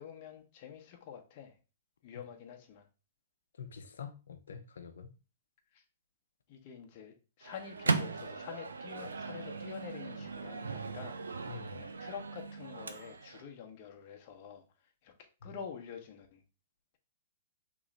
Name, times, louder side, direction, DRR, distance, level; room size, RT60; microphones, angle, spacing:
voice 1, 0.0-1.6 2.0-2.9 5.7-5.8 6.5-14.6 15.0-15.1 15.4-16.4, left 7 dB, 45° left, 0.9 m, -47 dB
voice 2, 3.6-5.1 11.5-11.8 15.4-15.6, left 6 dB, 75° left, 0.6 m, -46 dB
Microwave oven, 7.4-13.4, right 4 dB, 90° right, 0.4 m, -38 dB
3.1 x 3.1 x 3.8 m
hypercardioid pair, 120°, 0 cm